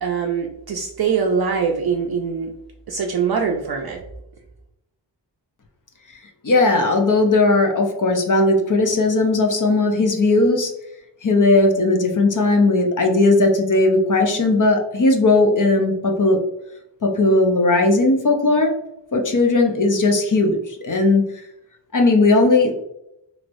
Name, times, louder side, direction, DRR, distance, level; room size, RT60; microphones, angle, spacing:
voice 1, 0.0-2.5 2.9-4.0, right 6 dB, 55° right, 1 dB, 0.5 m, -23 dB
voice 2, 6.4-10.7 11.2-16.4 17.0-18.7 19.1-21.3 21.9-22.9, left 2 dB, 45° left, 3 dB, 0.6 m, -17 dB
3.1 x 3.0 x 2.5 m, 0.82 s
wide cardioid pair, 90°, 44 cm